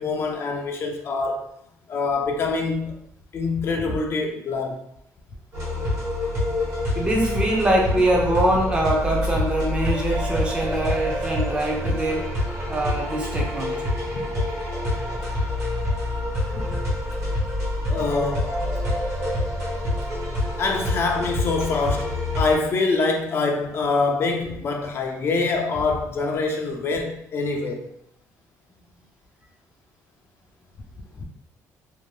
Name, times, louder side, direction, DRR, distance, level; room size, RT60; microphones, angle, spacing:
voice 1, 0.0-1.6 1.9-3.0 3.3-4.8 14.1-14.2 16.5-16.8 17.9-18.5 20.6-27.9 31.2-31.3, left 3 dB, 40° left, 0.4 m, -25 dB
sound 1, 5.5-22.5, left 1 dB, 55° right, 1.1 m, -26 dB
voice 2, 7.0-12.3 12.7-13.9, right 1 dB, 20° right, 0.5 m, -23 dB
2.6 x 2.1 x 3.1 m
cardioid pair, 140°, 6 cm